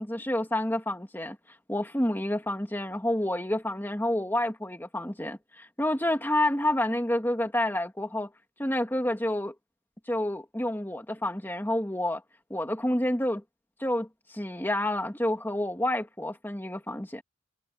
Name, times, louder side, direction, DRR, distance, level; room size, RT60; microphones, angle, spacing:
voice 1, 0.0-1.4 1.7-8.3 8.6-9.5 10.1-12.2 12.5-13.4 13.8-17.2, left 1 dB, 10° left, 2.2 m, -29 dB
head